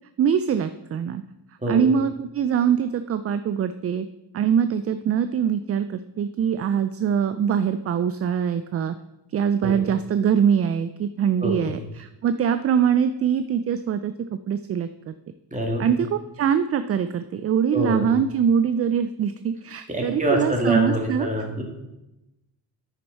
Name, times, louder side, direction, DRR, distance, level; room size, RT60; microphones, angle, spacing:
voice 1, 0.2-1.2 1.7-4.1 4.3-9.0 9.3-15.1 15.8-21.3, right 8 dB, 35° right, 11 dB, 0.4 m, -23 dB
voice 2, 11.4-11.7 15.5-15.8 17.7-18.1 19.9-21.6, right 1 dB, 15° right, 0 dB, 2.3 m, -25 dB
9.2 x 6.4 x 4.2 m, 0.94 s
cardioid pair, 75°, 46 cm